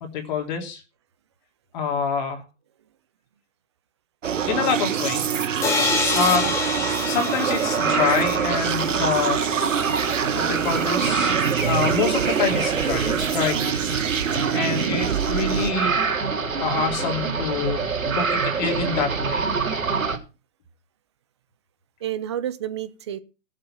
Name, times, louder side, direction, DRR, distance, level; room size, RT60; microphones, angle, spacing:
voice 1, 0.1-0.8 1.7-2.4 4.5-5.2 6.1-6.5 7.0-9.4 10.3-13.6 14.5-15.9 16.6-17.8 18.1-19.5, left 5 dB, 35° left, 3.3 m, -26 dB
sound 1, 4.2-15.7, right 8 dB, 70° right, 1.6 m, -25 dB
sound 2, 5.6-9.4, left 4 dB, 5° left, 1.4 m, -27 dB
voice 2, 6.1-6.6 14.6-15.0 22.0-23.2, right 11 dB, 20° right, 0.7 m, -31 dB
sound 3, 7.4-20.2, right 5 dB, 85° right, 3.7 m, -26 dB
15.5 x 7.5 x 6.0 m
hypercardioid pair, 155°, 39 cm